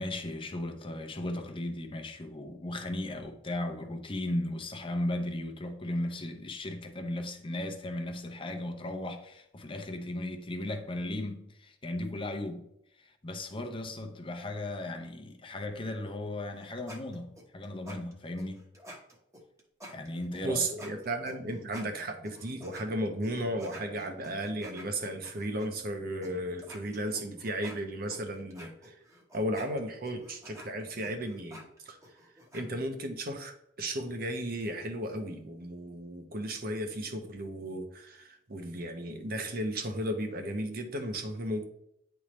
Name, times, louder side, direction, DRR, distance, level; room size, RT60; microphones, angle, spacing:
voice 1, 0.0-12.7 13.0-18.6 19.9-20.7, left 1 dB, 30° left, 0.8 m, -36 dB
sound 1, 16.4-22.9 23.2-25.7 26.2-26.3 26.6-32.7, equal, 15° right, 1.1 m, -50 dB
voice 2, 20.4-29.0 29.3-32.0 32.5-41.6, right 1 dB, 55° right, 1.0 m, -35 dB
9.8 x 3.5 x 3.1 m
head